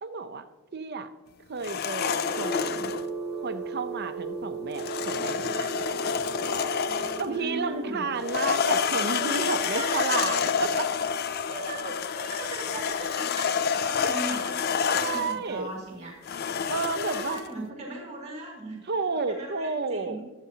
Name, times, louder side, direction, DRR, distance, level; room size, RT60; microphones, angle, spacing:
voice 1, 0.0-0.5 0.7-1.1 1.5-2.9 3.4-5.7 7.0-10.9 14.0-14.4 14.9-15.7 16.7-17.4 18.9-20.2, right 4 dB, 45° right, 9 dB, 0.7 m, -32 dB
sound 1, 1.6-3.1 4.8-7.4 8.2-15.4 16.2-17.5, left 6 dB, 45° left, 0.4 m, -28 dB
sound 2, 1.9-15.7, right 3 dB, 5° right, 1.4 m, -38 dB
voice 2, 6.8-8.0 9.5-10.4 11.4-16.4 16.8-18.8 19.3-20.2, right 2 dB, 30° right, -2 dB, 2.4 m, -39 dB
22.0 x 8.1 x 2.9 m, 1.2 s
head